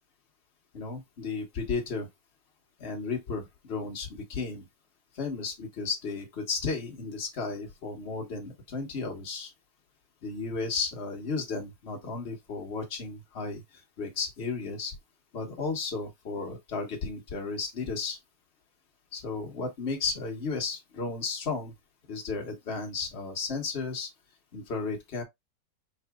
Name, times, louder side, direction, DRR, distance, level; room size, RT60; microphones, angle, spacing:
voice 1, 0.7-2.1 2.8-4.7 5.1-9.5 10.2-13.6 14.0-14.9 15.3-18.2 19.1-21.7 22.1-24.1 24.5-25.2, left 4 dB, 40° left, 1.2 m, -34 dB
4.6 x 3.8 x 2.3 m
omnidirectional pair, 2.0 m